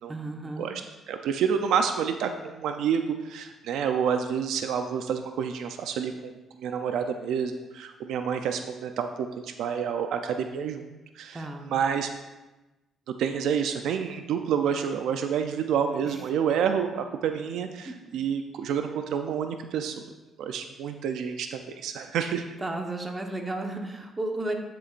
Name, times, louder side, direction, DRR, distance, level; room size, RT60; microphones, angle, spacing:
voice 1, 0.1-0.7 11.3-11.8 16.0-16.1 17.8-17.9 22.6-24.5, right 2 dB, 20° right, 2 dB, 1.2 m, -33 dB
voice 2, 1.1-6.3 6.6-12.1 13.2-19.9 20.4-22.4, right 7 dB, 80° right, 6 dB, 0.5 m, -28 dB
11.0 x 6.8 x 2.5 m, 1.1 s
cardioid pair, 90°, 0 cm